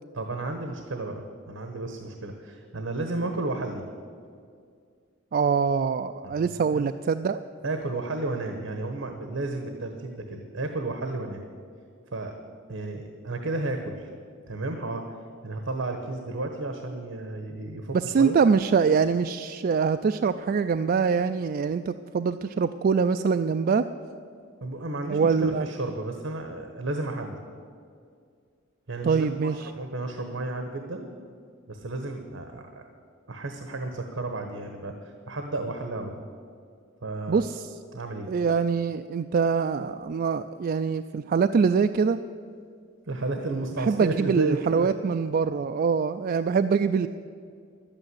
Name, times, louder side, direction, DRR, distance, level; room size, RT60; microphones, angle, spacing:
voice 1, 0.1-3.8 6.2-6.5 6.7-6.9 7.6-11.4 12.1-12.3 12.7-14.1 14.5-15.0 15.4-18.4 24.6-27.4 28.9-31.1 31.7-32.8 33.3-34.9 35.3-36.3 37.0-37.4 37.9-38.3 43.1-44.9, right 2 dB, 75° right, 5 dB, 1.1 m, -32 dB
voice 2, 5.3-7.4 17.9-23.8 25.1-25.7 29.0-29.5 37.3-37.7 38.3-42.2 43.8-47.1, right 5 dB, 45° right, 9 dB, 0.3 m, -24 dB
11.5 x 9.0 x 9.7 m, 2.2 s
head